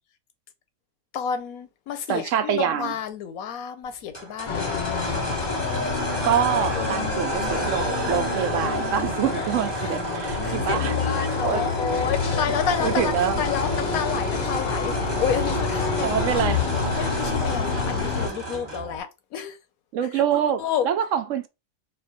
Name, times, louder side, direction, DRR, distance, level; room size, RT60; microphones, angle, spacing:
voice 1, 1.1-5.0 6.8-7.8 9.8-9.9 10.4-16.1 16.9-19.6 20.6-20.8, left 8 dB, 85° left, 1.2 m, -30 dB
voice 2, 2.1-3.0 6.2-11.6 12.8-13.4 16.0-16.9 19.9-21.5, right 9 dB, 70° right, 0.9 m, -26 dB
sound 1, 4.1-19.0, right 2 dB, 20° right, 1.0 m, -32 dB
sound 2, 4.5-18.3, left 5 dB, 45° left, 0.7 m, -27 dB
4.4 x 2.1 x 4.0 m
omnidirectional pair, 1.4 m